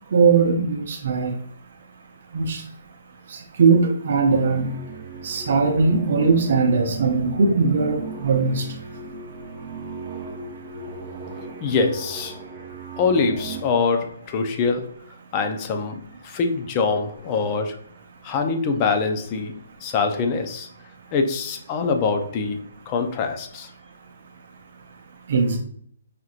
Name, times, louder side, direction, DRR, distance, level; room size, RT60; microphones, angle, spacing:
voice 1, 0.1-1.3 2.3-2.6 3.3-4.7 5.2-8.6 25.3-25.6, right 4 dB, 50° right, 3 dB, 0.6 m, -20 dB
sound 1, 4.3-13.6, right 4 dB, 15° right, 0.8 m, -36 dB
voice 2, 11.6-12.4 13.0-14.9 15.3-17.8 18.2-19.5 19.8-20.7 21.1-23.7, left 4 dB, 25° left, 6 dB, 0.5 m, -24 dB
5.0 x 2.9 x 2.4 m, 0.63 s
hypercardioid pair, 165°, 0 cm